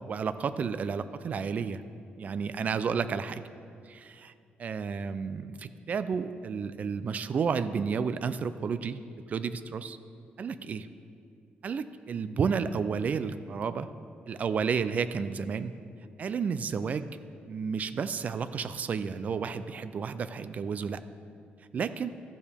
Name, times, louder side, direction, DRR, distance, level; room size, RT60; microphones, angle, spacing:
voice 1, 0.1-1.8 2.2-3.4 3.9-4.3 4.6-9.0 9.3-10.0 10.4-10.9 11.6-13.9 14.3-15.7 16.2-17.2 17.5-21.0 21.7-22.1, right 6 dB, 40° right, 12 dB, 0.4 m, -31 dB
13.5 x 7.1 x 3.4 m, 2.4 s
cardioid pair, 140°, 4 cm